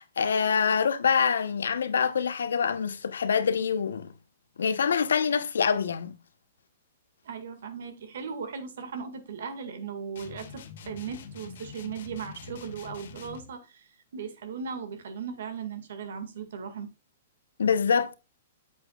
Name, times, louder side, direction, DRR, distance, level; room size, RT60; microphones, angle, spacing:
voice 1, 0.0-4.1 4.6-6.1 17.6-18.1, left 6 dB, 85° left, 1.0 m, -25 dB
voice 2, 7.2-16.9, right 6 dB, 75° right, 2.0 m, -38 dB
sound 1, 10.2-13.5, left 5 dB, 70° left, 1.6 m, -45 dB
8.4 x 8.1 x 2.4 m
hypercardioid pair, 140°, 0 cm